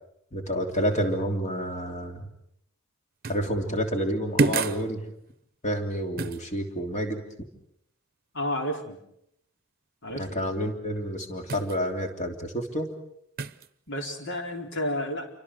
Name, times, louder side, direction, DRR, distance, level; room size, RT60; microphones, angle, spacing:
voice 1, 0.3-2.3 3.3-5.1 5.6-7.2 10.1-12.9, equal, 35° left, 4 dB, 3.1 m, -29 dB
sound 1, 3.2-3.5 4.4-4.9 6.2-6.4 11.5-11.8 13.4-13.7, right 4 dB, 45° right, 0.9 m, -27 dB
voice 2, 8.3-9.0 10.0-10.3 13.9-15.3, left 1 dB, 60° left, 3 dB, 4.4 m, -31 dB
29.0 x 24.0 x 6.4 m, 0.76 s
head